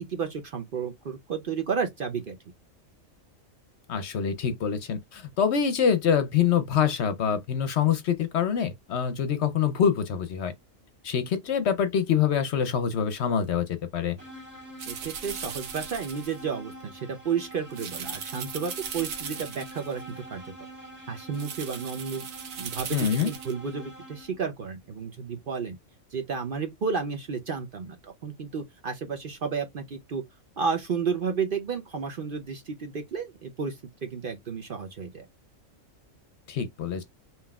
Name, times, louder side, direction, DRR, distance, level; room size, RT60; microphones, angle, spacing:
voice 1, 0.0-2.4 14.9-20.5 21.1-22.3 22.6-25.8 26.1-30.2 30.6-35.3, right 6 dB, 55° right, 0.7 m, -32 dB
voice 2, 3.9-10.5 11.0-13.7 13.9-14.2 22.9-23.3 36.5-37.0, left 7 dB, 65° left, 0.8 m, -25 dB
sound 1, 14.2-24.5, right 1 dB, 10° right, 1.5 m, -45 dB
sound 2, 14.8-16.4 17.7-20.0 21.3-23.5, right 7 dB, 85° right, 1.2 m, -38 dB
5.4 x 2.9 x 2.3 m
omnidirectional pair, 1.4 m